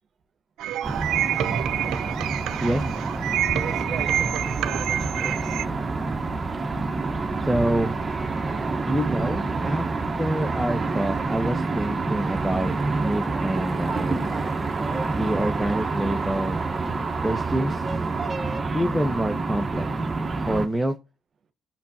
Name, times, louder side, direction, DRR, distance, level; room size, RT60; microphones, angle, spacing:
sound 1, 0.6-5.7, right 11 dB, 85° right, 0.6 m, -27 dB
sound 2, 0.8-20.7, right 3 dB, 30° right, 1.1 m, -27 dB
voice 1, 3.6-5.6, right 6 dB, 55° right, 1.1 m, -37 dB
voice 2, 7.5-8.0 8.9-9.9 10.2-12.7 13.0-14.3 15.1-16.6 17.2-17.8 18.7-19.9 20.5-20.9, right 1 dB, ahead, 1.0 m, -26 dB
17.5 x 5.9 x 2.9 m
cardioid pair, 90°, 0 cm